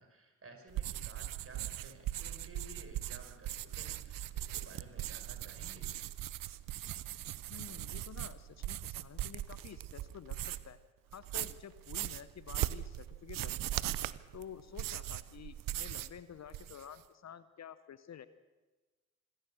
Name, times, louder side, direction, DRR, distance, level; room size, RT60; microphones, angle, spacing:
voice 1, 0.0-5.9, right 1 dB, 35° right, 4 dB, 5.9 m, -55 dB
sound 1, 0.7-10.8 11.1-16.2 16.5-17.0, right 14 dB, 55° right, 0.9 m, -39 dB
voice 2, 7.5-10.8 11.1-13.9 14.3-18.3, left 9 dB, 40° left, 14 dB, 1.0 m, -50 dB
26.0 x 15.5 x 6.6 m, 1.2 s
hypercardioid pair, 45°, 39 cm